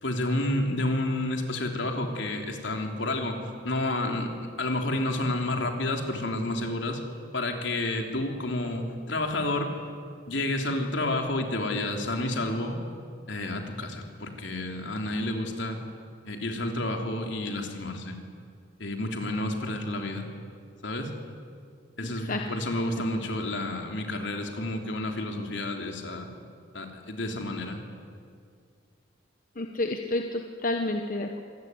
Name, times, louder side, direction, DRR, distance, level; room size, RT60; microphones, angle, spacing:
voice 1, 0.0-3.4 3.6-4.3 4.6-7.0 7.3-9.7 10.3-12.8 13.3-15.8 16.2-18.1 18.8-20.3 20.8-21.1 22.0-26.3 26.7-27.8, left 1 dB, 70° left, 3 dB, 3.3 m, -30 dB
voice 2, 29.6-31.4, left 2 dB, 45° left, 4 dB, 1.2 m, -29 dB
26.0 x 19.0 x 9.7 m, 2.2 s
head